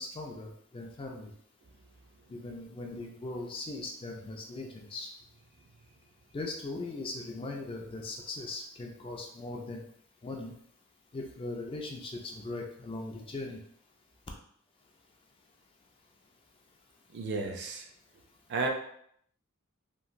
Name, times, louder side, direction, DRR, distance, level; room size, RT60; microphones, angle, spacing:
voice 1, 0.0-1.3 2.3-5.1 6.3-9.8 10.2-10.6 11.1-13.6, left 2 dB, 25° left, 1 dB, 0.3 m, -39 dB
voice 2, 17.1-17.9 18.5-18.7, right 3 dB, 50° right, 3 dB, 0.4 m, -32 dB
3.0 x 2.5 x 2.5 m, 0.68 s
head